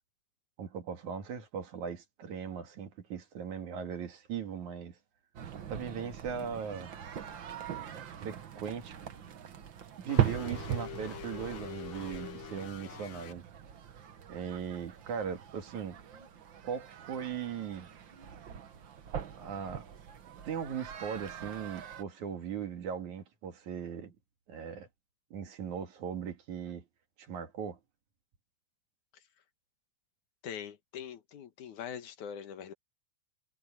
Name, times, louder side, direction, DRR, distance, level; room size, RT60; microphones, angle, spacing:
voice 1, 0.6-5.0 5.7-6.9 8.2-9.0 10.0-13.5 14.3-16.0 16.6-17.9 19.4-19.9 20.4-24.1 24.5-24.9 25.3-26.9 27.2-27.8, right 7 dB, 70° right, 3.5 m, -39 dB
sound 1, 5.4-22.0, right 9 dB, 55° right, 1.5 m, -40 dB
sound 2, 10.1-13.3, left 10 dB, 50° left, 1.7 m, -45 dB
voice 2, 30.4-32.7, left 8 dB, 75° left, 2.8 m, -42 dB
omnidirectional pair, 3.5 m